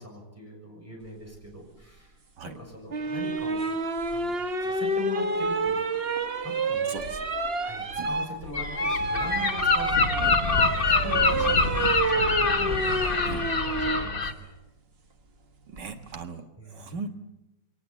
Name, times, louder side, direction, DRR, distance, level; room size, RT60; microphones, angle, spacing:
voice 1, 0.0-3.6 4.1-6.0 6.4-6.9 7.6-14.5 16.6-17.0, equal, 5° right, -1 dB, 6.5 m, -41 dB
sound 1, 2.9-14.1 15.8-16.2, right 3 dB, 35° right, 1.2 m, -29 dB
voice 2, 6.9-7.2 8.0-8.1 10.2-10.4 13.2-13.4 15.7-17.1, right 5 dB, 65° right, 7 dB, 2.2 m, -38 dB
Gull seagull, 8.5-14.3, left 4 dB, 30° left, 1.3 m, -25 dB
23.5 x 19.0 x 8.3 m, 0.92 s
omnidirectional pair, 2.0 m